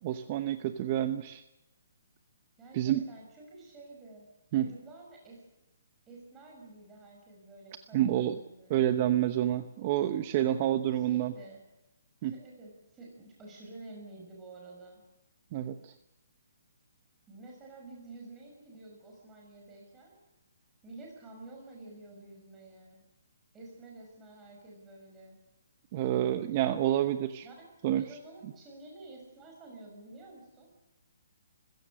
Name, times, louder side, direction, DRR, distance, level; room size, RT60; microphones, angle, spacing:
voice 1, 0.0-1.4 2.7-3.0 4.5-4.7 7.9-8.3 8.7-11.3 12.2-12.3 15.5-15.9 25.9-27.4 27.8-28.0, right 12 dB, 35° right, 10 dB, 0.9 m, -28 dB
voice 2, 2.6-4.3 4.6-5.5 6.1-8.8 10.5-10.6 10.9-11.6 12.2-15.0 17.3-20.2 20.8-23.1 23.5-25.4 27.4-27.5 27.9-30.7, right 2 dB, 15° right, -1 dB, 6.0 m, -50 dB
28.5 x 16.0 x 6.6 m, 0.93 s
hypercardioid pair, 155°, 0 cm